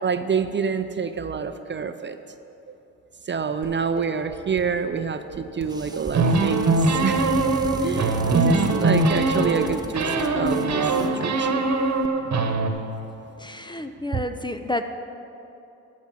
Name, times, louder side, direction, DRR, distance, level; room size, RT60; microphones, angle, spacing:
voice 1, 0.0-2.2 2.7-2.8 3.3-7.3 7.8-11.6 14.1-14.2, right 6 dB, 30° right, 9 dB, 0.6 m, -27 dB
Dishes pots and pans, 3.6-4.7 5.0-10.8, right 7 dB, 90° right, 1.2 m, -40 dB
sound 1, 5.6-12.1, right 1 dB, 10° right, 0.9 m, -37 dB
sound 2, 6.1-9.7 9.9-12.7, right 3 dB, 50° right, 1.3 m, -22 dB
voice 2, 13.4-14.8, left 1 dB, 15° left, 7 dB, 0.6 m, -30 dB
12.5 x 5.3 x 7.6 m, 2.9 s
hypercardioid pair, 50°, 36 cm